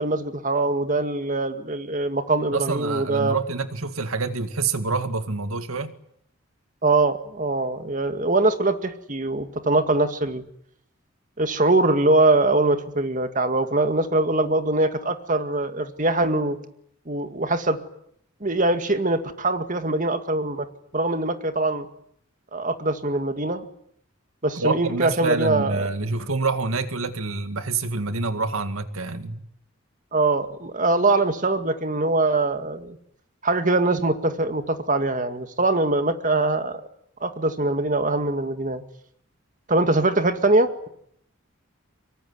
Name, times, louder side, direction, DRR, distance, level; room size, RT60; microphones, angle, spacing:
voice 1, 0.0-3.4 6.8-10.4 11.4-16.6 17.1-17.8 18.4-20.7 20.9-21.9 22.5-23.7 24.4-25.8 30.1-33.0 33.4-36.8 37.2-38.8 39.7-40.9, right 2 dB, 40° right, 2.1 m, -22 dB
voice 2, 2.5-5.9 24.6-29.4, right 3 dB, 80° right, 2.1 m, -26 dB
25.5 x 23.5 x 9.7 m
head